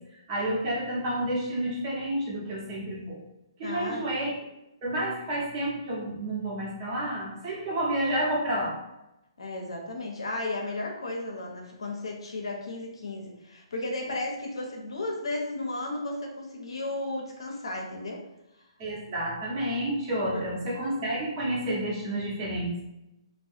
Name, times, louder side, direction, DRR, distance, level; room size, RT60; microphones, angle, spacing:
voice 1, 0.3-3.2 3.6-4.4 4.8-8.8 18.8-22.8, right 1 dB, 35° right, -4 dB, 0.9 m, -30 dB
voice 2, 3.6-4.0 9.4-18.2 20.3-20.4, left 2 dB, 75° left, 0 dB, 0.6 m, -34 dB
2.3 x 2.1 x 2.6 m, 0.89 s
figure-of-eight pair, 130°, 3 cm